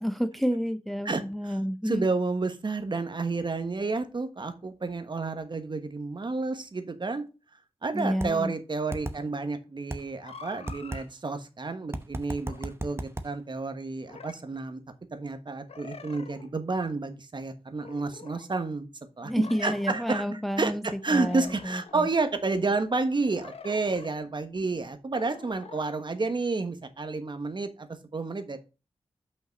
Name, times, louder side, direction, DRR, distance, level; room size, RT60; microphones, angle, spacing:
voice 1, 0.0-2.0 7.9-8.5 19.2-20.8 21.1-22.1, equal, ahead, 10 dB, 0.6 m, -29 dB
voice 2, 1.0-1.6 1.8-7.3 7.8-14.8 15.1-18.9 19.2-19.3 19.6-28.6, right 3 dB, 50° right, 8 dB, 1.2 m, -30 dB
sound 1, 8.2-8.3 8.9-9.2 9.9-10.0 10.7-11.0 11.9-13.3, right 1 dB, 25° right, 0.9 m, -33 dB
sound 2, 10.2-11.1 12.4-12.7 14.1-14.4 15.7-16.5 17.8-18.4 19.4-20.1 21.0-22.1 23.2-24.1 25.1-25.8, left 5 dB, 80° left, 1.0 m, -46 dB
5.9 x 5.4 x 5.2 m, 0.30 s
wide cardioid pair, 70°, 10 cm